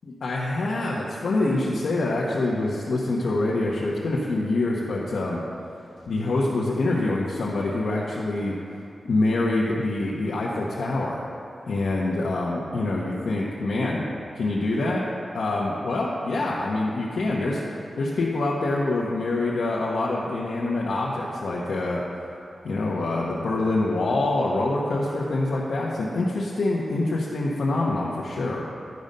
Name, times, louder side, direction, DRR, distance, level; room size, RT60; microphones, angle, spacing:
voice 1, 0.2-5.4 6.1-8.5 9.0-11.2 11.7-14.1 14.3-15.0 15.3-17.6 18.0-22.0 22.6-28.6, left 2 dB, 75° left, -5 dB, 0.9 m, -25 dB
10.5 x 5.2 x 5.4 m, 2.7 s
wide cardioid pair, 175°, 0 cm